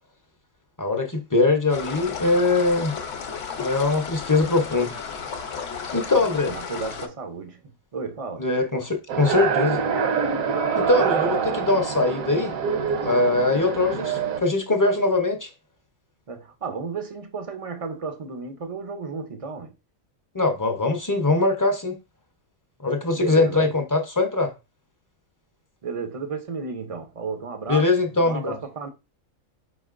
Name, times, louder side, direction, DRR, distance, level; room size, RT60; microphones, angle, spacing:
voice 1, 0.8-2.9 3.6-4.9 5.9-6.5 8.4-9.8 10.8-12.5 13.0-15.5 20.3-22.0 22.8-24.5 27.7-28.6, left 3 dB, 25° left, 0.4 m, -22 dB
sound 1, 1.7-7.1, left 6 dB, 65° left, 1.1 m, -34 dB
voice 2, 6.2-8.4 16.3-19.8 23.1-23.7 25.8-28.9, right 5 dB, 50° right, 0.4 m, -33 dB
sound 2, 9.1-14.4, right 6 dB, 75° right, 1.1 m, -25 dB
5.2 x 4.1 x 2.4 m
omnidirectional pair, 1.5 m